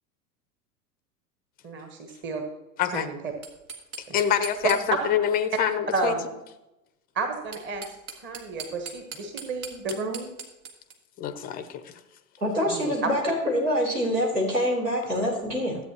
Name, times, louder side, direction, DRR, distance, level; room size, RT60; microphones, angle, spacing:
voice 1, 1.6-2.4 2.9-3.2 4.1-4.2 5.9-6.2 7.1-7.8 8.2-10.3 12.6-12.9, right 3 dB, 25° right, 4 dB, 1.2 m, -32 dB
sound 1, 3.4-5.2 7.3-10.9, right 6 dB, 65° right, 1.5 m, -40 dB
voice 2, 4.1-4.8 5.0-6.2 11.2-11.8, left 9 dB, 20° left, 13 dB, 0.5 m, -25 dB
voice 3, 12.4-15.8, equal, 85° right, -4 dB, 3.2 m, -25 dB
13.5 x 8.2 x 2.9 m, 0.94 s
figure-of-eight pair, 85°, 48 cm